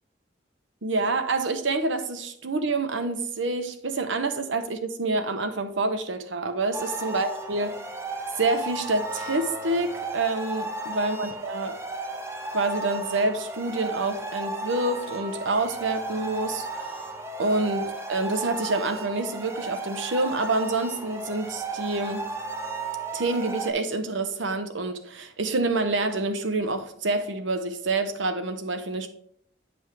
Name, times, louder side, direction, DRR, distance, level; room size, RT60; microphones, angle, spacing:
voice 1, 0.8-7.7 8.4-11.8 12.5-17.1 17.4-22.3 23.1-29.1, right 2 dB, 90° right, 0.9 m, -27 dB
sound 1, 6.7-23.7, right 2 dB, 15° right, 0.6 m, -35 dB
9.3 x 5.4 x 3.3 m
head